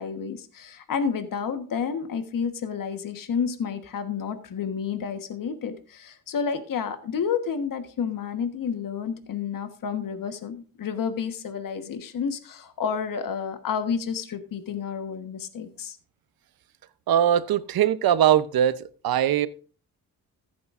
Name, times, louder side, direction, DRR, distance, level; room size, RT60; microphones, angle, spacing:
voice 1, 0.0-16.0, left 6 dB, 60° left, 9 dB, 1.4 m, -30 dB
voice 2, 17.1-18.8 19.0-19.5, right 10 dB, 75° right, 15 dB, 0.8 m, -21 dB
15.0 x 8.7 x 2.5 m, 0.39 s
cardioid pair, 120°, 37 cm